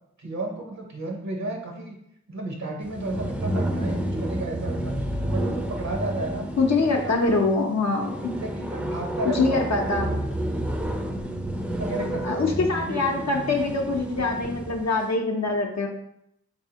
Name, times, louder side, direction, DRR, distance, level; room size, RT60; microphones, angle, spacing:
voice 1, 0.2-2.0 2.3-4.9 5.3-6.4 6.8-7.4 8.2-10.2 11.6-13.7, right 2 dB, 70° right, 1 dB, 0.7 m, -33 dB
sound 1, 2.8-14.9, right 1 dB, 5° right, 0.4 m, -30 dB
voice 2, 6.6-8.3 9.3-10.2 12.2-15.9, left 3 dB, 70° left, 1 dB, 0.6 m, -24 dB
4.1 x 2.7 x 2.8 m, 0.75 s
wide cardioid pair, 40°, 29 cm